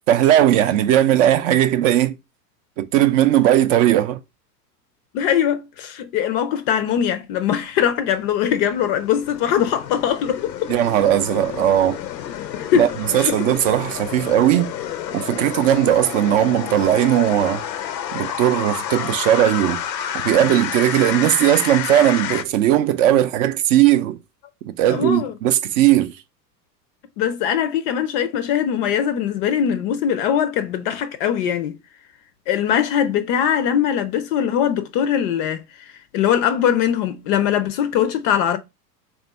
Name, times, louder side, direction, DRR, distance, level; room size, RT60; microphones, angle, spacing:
voice 1, 0.0-2.2 2.8-4.2 10.7-12.0 12.7-14.7 15.1-17.6 18.1-19.8 20.1-24.2 24.6-26.1, right 12 dB, 50° right, 0.5 m, -18 dB
voice 2, 5.1-10.5 12.5-13.3 24.9-25.3 27.2-31.7 32.5-35.6 36.1-38.6, left 9 dB, 40° left, 0.4 m, -21 dB
sound 1, 7.9-22.4, left 10 dB, 90° left, 0.6 m, -30 dB
3.5 x 2.5 x 3.9 m
hypercardioid pair, 105°, 49 cm